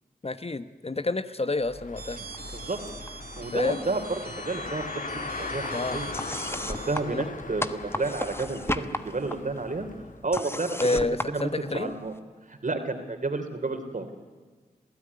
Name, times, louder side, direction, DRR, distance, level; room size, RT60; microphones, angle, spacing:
voice 1, 0.2-2.2 3.5-3.8 5.7-6.0 7.1-7.3 10.8-11.9, left 2 dB, 40° left, 12 dB, 1.1 m, -29 dB
Car, 1.6-10.2, left 3 dB, 60° left, 1.7 m, -39 dB
sound 1, 1.9-7.0, right 5 dB, 70° right, 2.7 m, -44 dB
sound 2, 2.3-3.1 3.4-4.4 4.7-12.2, left 1 dB, 15° left, 1.2 m, -37 dB
voice 2, 3.4-4.2 4.4-6.1 6.6-9.9 10.2-12.1 12.5-14.1, right 3 dB, 55° right, 7 dB, 3.3 m, -31 dB
27.0 x 15.5 x 9.6 m, 1.5 s
cardioid pair, 40°, 16 cm